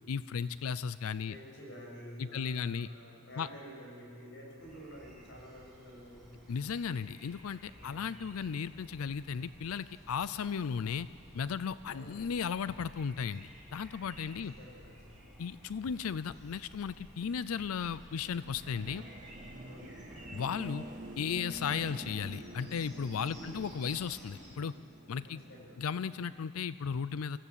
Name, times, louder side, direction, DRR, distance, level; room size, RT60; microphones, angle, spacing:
voice 1, 0.1-1.4 2.2-2.9 3.4-3.5 6.5-11.1 11.3-14.5 15.4-19.0 20.3-20.8 21.2-24.7 25.1-25.4 25.8-27.4, left 6 dB, 75° left, 16 dB, 0.4 m, -35 dB
voice 2, 1.3-6.3 7.8-8.2 11.9-12.3 14.2-15.3 19.6-20.1 23.3-23.7 25.2-25.9, equal, 60° left, -2 dB, 6.5 m, -50 dB
sound 1, 4.6-24.5, equal, ahead, 6.8 m, -55 dB
sound 2, 16.7-26.4, right 1 dB, 35° right, 2.1 m, -49 dB
24.0 x 15.5 x 8.4 m, 2.4 s
head